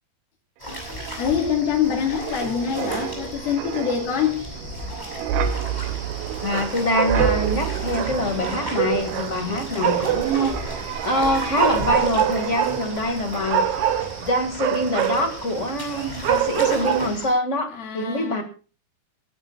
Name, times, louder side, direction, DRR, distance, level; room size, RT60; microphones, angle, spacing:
sound 1, 0.6-17.3, left 1 dB, 10° left, 6.9 m, -36 dB
Wind, 0.6-13.0 13.3-13.6, right 8 dB, 85° right, 2.9 m, -32 dB
voice 1, 1.2-4.5 17.7-18.4, left 8 dB, 75° left, -1 dB, 4.2 m, -25 dB
sound 2, 5.4-17.1, right 10 dB, 65° right, 2.2 m, -26 dB
voice 2, 6.4-13.8 14.2-18.4, left 1 dB, 30° left, 5 dB, 1.4 m, -25 dB
26.5 x 12.5 x 2.3 m, 0.36 s
omnidirectional pair, 4.3 m